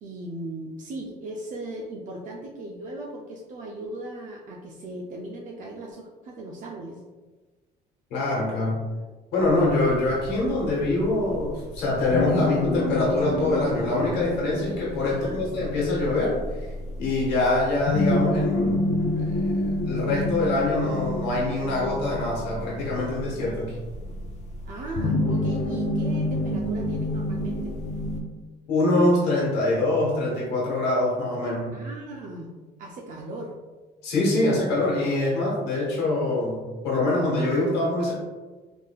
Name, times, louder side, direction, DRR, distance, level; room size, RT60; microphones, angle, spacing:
voice 1, 0.0-7.0 15.1-15.4 24.6-27.7 31.7-32.5 32.8-33.5, right 1 dB, 50° right, -1 dB, 0.4 m, -37 dB
voice 2, 8.1-8.8 9.3-16.3 17.0-18.9 19.2-19.4 19.8-23.8 28.7-31.7 34.0-38.1, left 2 dB, 80° left, -5 dB, 1.0 m, -24 dB
sound 1, 9.4-28.2, left 1 dB, 45° left, 0.5 m, -29 dB
3.4 x 2.5 x 2.3 m, 1.3 s
cardioid pair, 110°, 17 cm